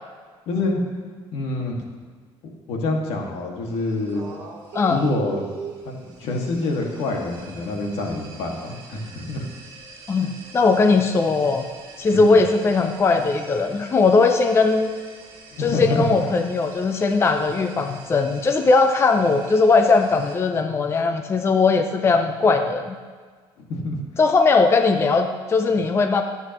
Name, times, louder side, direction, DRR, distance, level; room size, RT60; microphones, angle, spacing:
voice 1, 0.5-0.8 1.3-1.8 2.7-4.2 4.9-5.4 5.8-9.5 10.2-10.3 12.1-12.4 15.5-16.2 23.6-24.0, left 2 dB, 80° left, 0 dB, 2.0 m, -26 dB
sound 1, 3.7-20.4, right 4 dB, 45° right, 2.6 m, -43 dB
voice 2, 10.5-11.7 12.0-14.9 15.6-22.9 24.2-26.2, left 4 dB, 25° left, 6 dB, 0.6 m, -19 dB
22.5 x 8.1 x 3.0 m, 1.5 s
cardioid pair, 145°, 10 cm